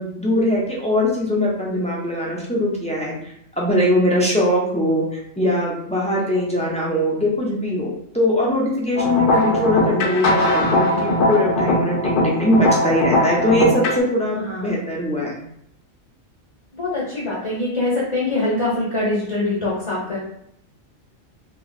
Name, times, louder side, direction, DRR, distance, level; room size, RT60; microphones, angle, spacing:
voice 1, 0.0-3.2 3.6-15.4, left 1 dB, 5° left, -4 dB, 0.6 m, -21 dB
sound 1, 9.0-14.0, left 1 dB, 50° left, 0.7 m, -20 dB
voice 2, 14.4-14.7 16.7-20.2, left 2 dB, 25° left, -6 dB, 1.1 m, -24 dB
3.0 x 2.4 x 4.1 m, 0.73 s
omnidirectional pair, 1.3 m